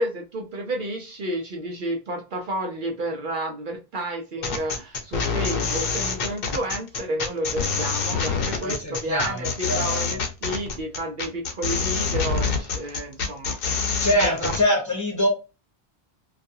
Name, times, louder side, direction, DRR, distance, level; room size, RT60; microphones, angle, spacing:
voice 1, 0.0-13.9 14.2-14.5, right 1 dB, 60° right, 1 dB, 0.7 m, -31 dB
sound 1, 4.4-14.6, left 5 dB, 65° left, 0.8 m, -26 dB
voice 2, 8.6-10.2 14.0-15.3, equal, 20° left, -2 dB, 0.9 m, -24 dB
2.4 x 2.4 x 2.6 m, 0.29 s
omnidirectional pair, 1.1 m